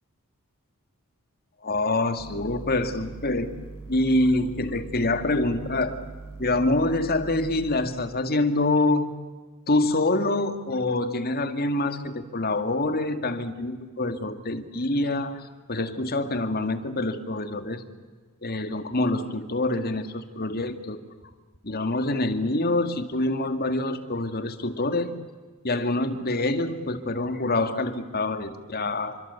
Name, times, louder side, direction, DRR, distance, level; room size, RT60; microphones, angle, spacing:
voice 1, 1.6-3.5 3.9-6.0 6.4-9.1 9.7-17.8 18.4-21.0 21.6-25.1 25.6-29.2, left 2 dB, 45° left, 9 dB, 2.1 m, -26 dB
sound 1, 2.2-7.7, right 3 dB, 70° right, 6.1 m, -41 dB
28.5 x 25.0 x 8.3 m, 1.4 s
head